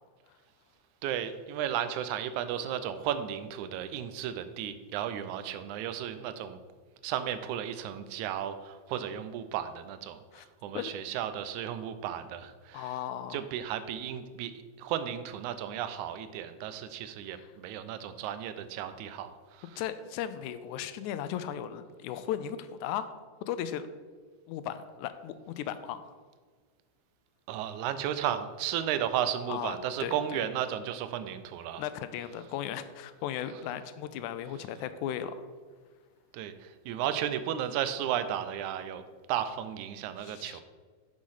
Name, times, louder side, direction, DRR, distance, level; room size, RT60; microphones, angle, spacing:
voice 1, 1.0-6.6 7.0-12.9 13.3-19.8 27.5-31.8 36.3-39.0 39.3-40.6, right 10 dB, 85° right, 11 dB, 2.0 m, -34 dB
voice 2, 12.7-13.4 17.3-17.5 19.8-23.2 23.5-23.8 24.5-26.1 29.5-30.4 31.8-35.5 40.2-40.6, left 10 dB, 90° left, 12 dB, 2.0 m, -36 dB
6.7 x 6.3 x 5.6 m, 1.5 s
omnidirectional pair, 3.4 m